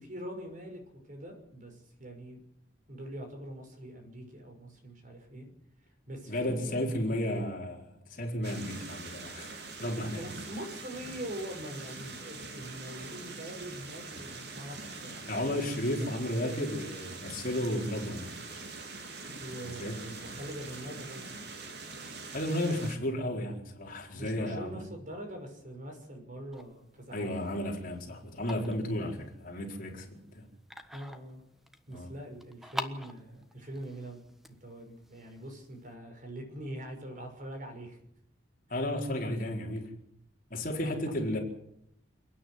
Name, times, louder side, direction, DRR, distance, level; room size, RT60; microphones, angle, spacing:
voice 1, 0.0-2.4 2.9-5.5 6.1-7.0 7.3-7.6 9.9-16.1 16.6-16.7 19.4-21.4 24.2-27.3 29.0-29.2 30.9-31.4 31.9-34.2 34.5-38.0 38.7-38.8 40.7-40.9, right 1 dB, 40° right, 4 dB, 6.1 m, -43 dB
voice 2, 6.3-7.8 8.1-9.5 9.8-10.2 15.3-18.3 19.6-20.0 22.3-24.8 27.1-30.5 31.9-32.1 38.7-39.9 40.5-41.4, left 1 dB, 45° left, 1 dB, 4.4 m, -33 dB
sound 1, 8.4-23.0, right 3 dB, 60° right, 3.4 m, -44 dB
sound 2, 26.5-35.9, equal, ahead, 1.3 m, -47 dB
29.0 x 10.0 x 9.7 m, 0.75 s
head